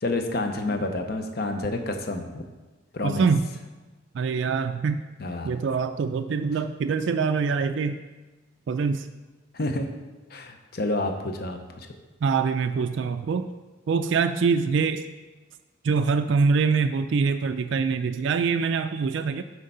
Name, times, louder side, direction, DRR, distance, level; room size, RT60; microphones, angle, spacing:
voice 1, 0.0-2.4 2.9-3.3 5.2-5.5 9.5-9.9 10.3-11.9, left 2 dB, 50° left, 5 dB, 0.7 m, -29 dB
voice 2, 3.0-3.5 4.1-5.0 5.4-8.0 8.7-9.1 12.2-13.5 13.9-15.1 15.8-19.4, right 5 dB, 60° right, 8 dB, 0.3 m, -24 dB
6.4 x 4.5 x 5.5 m, 1.2 s
head